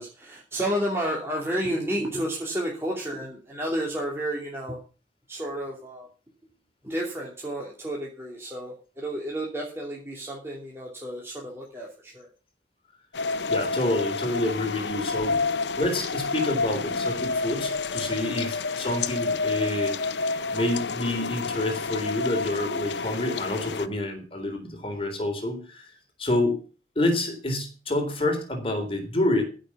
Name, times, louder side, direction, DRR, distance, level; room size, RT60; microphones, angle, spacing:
voice 1, 0.0-4.8 5.3-6.1 6.8-12.3, right 1 dB, 15° right, -3 dB, 2.9 m, -31 dB
sound 1, 13.1-23.9, left 4 dB, 80° left, 0.8 m, -29 dB
voice 2, 13.5-15.4 15.8-20.0 20.5-25.9 26.2-26.6 27.0-29.4, left 1 dB, 30° left, 5 dB, 3.7 m, -28 dB
15.0 x 6.4 x 7.2 m, 0.36 s
head